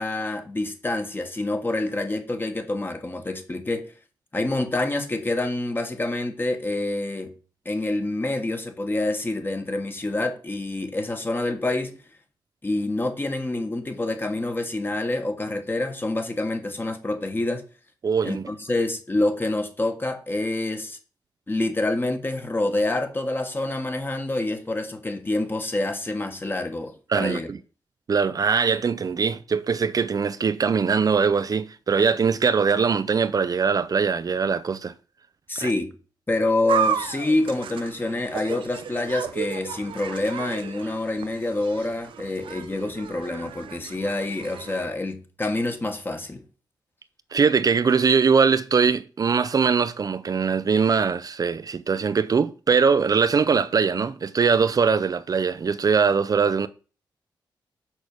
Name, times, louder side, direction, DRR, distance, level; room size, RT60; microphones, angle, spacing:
voice 1, 0.0-3.9 4.3-7.3 7.6-12.0 12.6-17.6 18.2-21.0 21.5-27.5 35.5-35.9 36.3-46.4, left 2 dB, 25° left, 1.5 m, -27 dB
voice 2, 18.0-18.4 27.1-27.6 28.1-34.9 35.6-35.7 47.3-56.7, right 5 dB, 45° right, 0.5 m, -21 dB
sound 1, 36.7-44.8, right 8 dB, 90° right, 0.7 m, -33 dB
6.3 x 4.9 x 6.6 m
cardioid pair, 85°, 9 cm